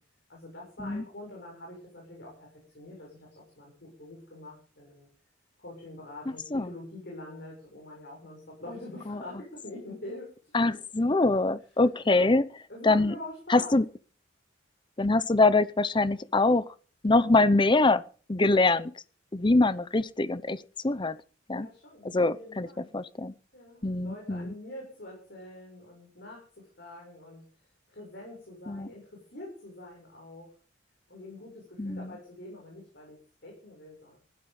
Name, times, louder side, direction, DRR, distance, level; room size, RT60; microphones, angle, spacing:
voice 1, 0.3-5.1 5.6-10.8 12.1-13.8 21.5-22.9 23.5-27.4 27.9-30.5 31.1-34.2, left 1 dB, 55° left, 7.1 m, -45 dB
voice 2, 6.3-6.7 9.1-9.2 10.5-12.5 12.8-13.1 13.5-13.9 15.0-16.7 17.0-18.0 18.3-18.9 19.3-21.2 21.5-21.7 22.0-23.3 23.8-24.5 28.7-28.9 31.8-32.1, left 2 dB, 25° left, 0.7 m, -24 dB
15.5 x 12.0 x 5.5 m
head